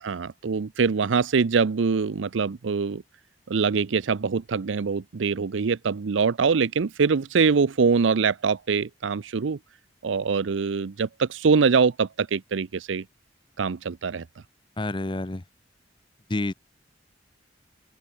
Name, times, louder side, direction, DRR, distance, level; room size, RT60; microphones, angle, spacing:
voice 1, 0.0-3.0 3.5-9.6 10.0-13.0 13.6-14.2, right 5 dB, 85° right, 0.5 m, -23 dB
voice 2, 14.8-15.4 16.3-16.5, left 2 dB, 25° left, 0.8 m, -28 dB
open air
head